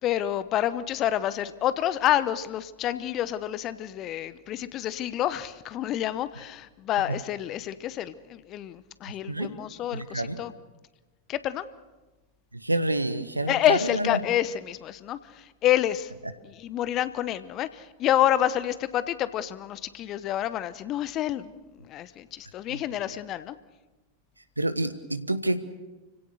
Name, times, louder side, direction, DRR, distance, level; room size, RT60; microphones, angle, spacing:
voice 1, 0.0-10.5 11.3-11.7 13.5-16.1 16.4-23.6, left 12 dB, 35° left, 15 dB, 0.9 m, -28 dB
voice 2, 9.1-9.5 9.9-10.4 12.5-14.2 24.6-25.6, right 1 dB, 85° right, 12 dB, 1.2 m, -28 dB
29.5 x 17.0 x 6.5 m, 1.2 s
figure-of-eight pair, 90°, 0 cm